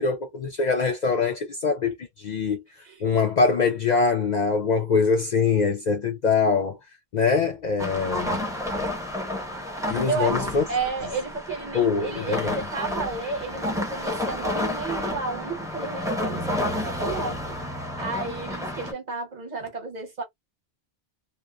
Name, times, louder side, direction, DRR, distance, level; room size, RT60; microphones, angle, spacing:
voice 1, 0.0-2.6 3.0-6.8 7.1-8.4 9.9-10.6 11.7-12.6, left 5 dB, 55° left, 0.5 m, -23 dB
voice 2, 4.3-4.9 10.1-10.4 10.7-20.2, right 4 dB, 45° right, 1.0 m, -32 dB
sound 1, 7.8-18.9, left 1 dB, 5° right, 0.6 m, -30 dB
2.9 x 2.1 x 2.2 m
omnidirectional pair, 1.0 m